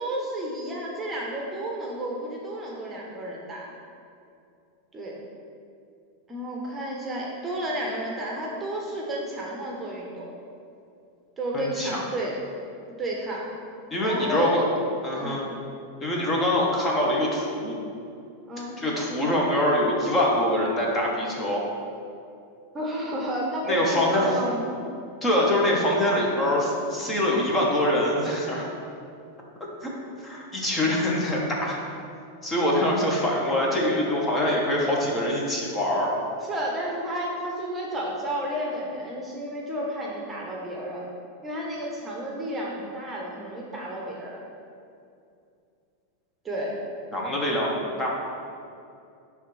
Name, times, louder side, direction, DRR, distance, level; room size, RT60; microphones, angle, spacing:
voice 1, 0.0-3.7 4.9-5.2 6.3-10.3 11.4-12.3 13.0-13.5 14.0-14.6 15.2-15.4 18.5-18.8 22.7-24.8 36.4-41.1 41.4-44.5 46.4-46.8, right 1 dB, 20° right, -2 dB, 1.1 m, -31 dB
voice 2, 11.5-12.0 13.9-14.6 15.0-15.5 16.0-17.8 18.8-21.7 23.7-24.4 25.2-28.7 29.8-29.9 30.2-31.8 32.4-36.1 47.1-48.1, left 1 dB, 20° left, -3 dB, 1.4 m, -24 dB
10.5 x 3.5 x 3.4 m, 2.5 s
hypercardioid pair, 110°, 0 cm